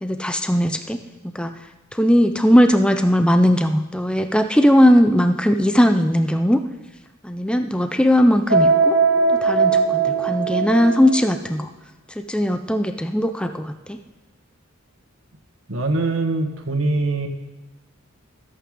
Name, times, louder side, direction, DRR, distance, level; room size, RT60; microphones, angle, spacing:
voice 1, 0.0-1.0 1.2-1.5 1.9-6.6 7.2-9.0 9.4-11.7 12.2-14.0, equal, 5° left, 7 dB, 0.6 m, -18 dB
sound 1, 8.5-11.3, right 4 dB, 60° right, 1.1 m, -19 dB
voice 2, 15.7-17.3, right 2 dB, 80° right, 4 dB, 1.8 m, -22 dB
24.5 x 8.4 x 3.9 m, 1.2 s
head